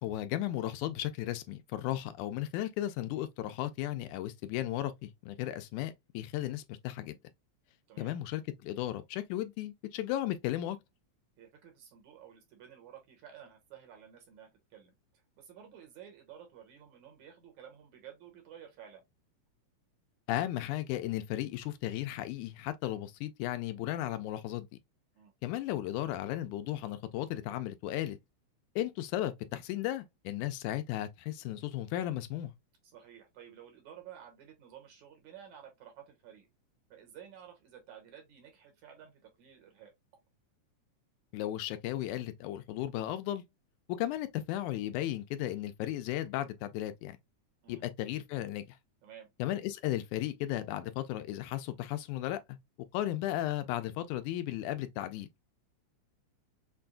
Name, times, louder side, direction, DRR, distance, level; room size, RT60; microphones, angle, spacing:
voice 1, 0.0-7.2 8.0-10.8 20.3-24.7 25.4-28.2 28.8-32.5 41.3-43.4 43.9-47.2 47.7-48.8 49.4-52.6 52.9-55.3, left 13 dB, 85° left, 2.0 m, -35 dB
voice 2, 11.4-19.0 25.2-25.3 32.8-36.5 36.9-39.9 47.6-47.8 49.0-49.3, right 9 dB, 70° right, 2.6 m, -53 dB
6.0 x 2.3 x 2.4 m
omnidirectional pair, 3.5 m